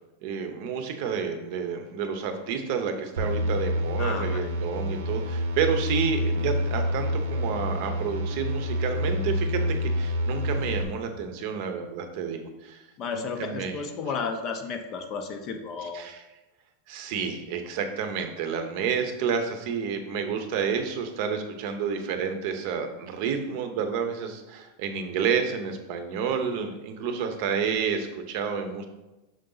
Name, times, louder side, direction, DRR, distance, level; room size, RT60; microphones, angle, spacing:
voice 1, 0.2-12.8 13.1-13.7 15.9-16.2 16.9-28.9, right 6 dB, 45° right, 6 dB, 0.7 m, -30 dB
sound 1, 3.2-10.8, equal, 85° right, 0.8 m, -28 dB
voice 2, 4.0-4.5 13.0-16.1, left 5 dB, 30° left, 6 dB, 0.5 m, -33 dB
6.5 x 3.9 x 3.9 m, 1.0 s
supercardioid pair, 170°, 0 cm